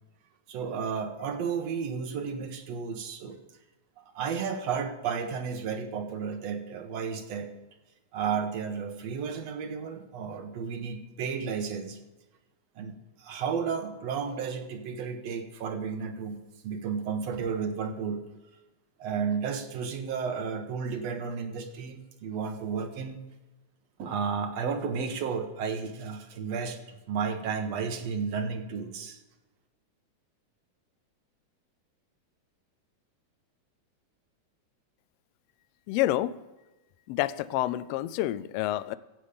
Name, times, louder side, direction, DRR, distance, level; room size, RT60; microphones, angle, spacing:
voice 1, 0.5-3.4 4.0-7.5 8.1-12.0 12.8-18.2 19.0-23.2 24.0-29.2, right 6 dB, 65° right, 6 dB, 2.1 m, -33 dB
voice 2, 35.9-36.3 37.1-39.0, left 15 dB, 85° left, 15 dB, 1.4 m, -28 dB
15.0 x 8.3 x 5.1 m, 1.1 s
omnidirectional pair, 3.4 m